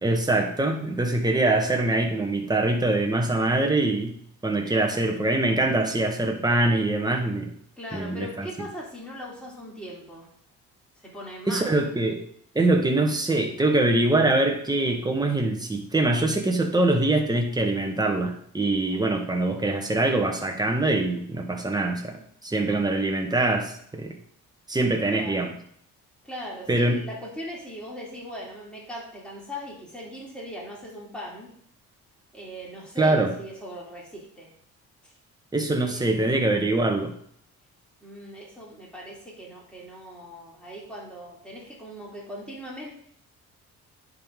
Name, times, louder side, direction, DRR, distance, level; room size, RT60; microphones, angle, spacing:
voice 1, 0.0-4.2 4.4-7.5 7.9-8.5 11.5-12.2 12.5-24.1 24.7-25.5 26.7-27.0 33.0-33.3 35.5-37.1, right 2 dB, 15° right, 3 dB, 1.4 m, -23 dB
voice 2, 7.8-10.3 11.0-11.8 25.1-25.5 26.2-31.5 32.3-34.5 35.0-35.1 35.7-36.0 38.0-42.9, equal, 5° left, -5 dB, 3.2 m, -39 dB
10.0 x 4.0 x 3.7 m, 0.63 s
cardioid pair, 90°, 30 cm